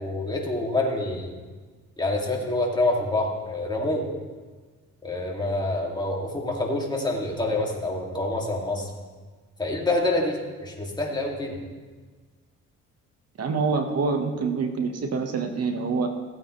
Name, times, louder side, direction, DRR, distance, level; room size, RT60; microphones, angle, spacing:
voice 1, 0.0-1.4 2.0-4.1 5.0-8.9 9.6-11.6, left 2 dB, 15° left, -1 dB, 2.3 m, -27 dB
voice 2, 13.4-16.1, right 4 dB, 55° right, 5 dB, 1.3 m, -26 dB
16.0 x 8.9 x 3.2 m, 1.4 s
cardioid pair, 90°, 30 cm